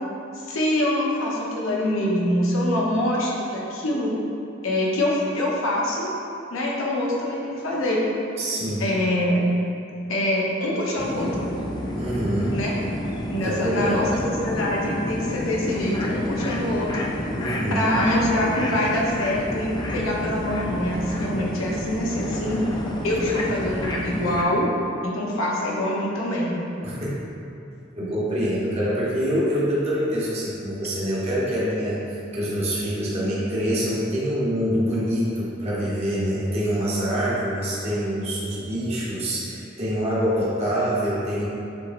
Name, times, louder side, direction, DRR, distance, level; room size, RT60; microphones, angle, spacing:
voice 1, 0.5-4.1 4.6-6.1 6.5-8.0 8.8-9.4 10.1-11.5 12.5-12.7 13.3-17.0 17.7-22.6 23.0-24.7 25.0-26.6, left 1 dB, 85° left, -4 dB, 0.9 m, -24 dB
voice 2, 8.4-8.9 12.0-12.6 13.4-14.0 17.3-17.9 26.8-27.1 27.9-32.0 32.3-41.4, equal, 30° right, -8 dB, 0.9 m, -25 dB
sound 1, 11.0-24.4, left 1 dB, 20° left, 0.4 m, -30 dB
6.8 x 3.0 x 2.5 m, 2.7 s
head